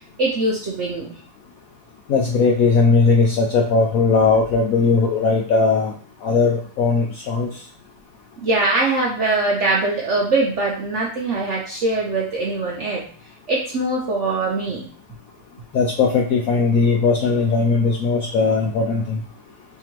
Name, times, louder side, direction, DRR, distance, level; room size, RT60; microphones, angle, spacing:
voice 1, 0.2-1.1 8.4-13.0 13.5-14.9, right 2 dB, 65° right, -3 dB, 0.7 m, -22 dB
voice 2, 2.1-5.9 6.2-7.5 15.7-19.2, left 4 dB, 75° left, 1 dB, 0.8 m, -18 dB
3.7 x 3.4 x 3.0 m, 0.42 s
omnidirectional pair, 2.0 m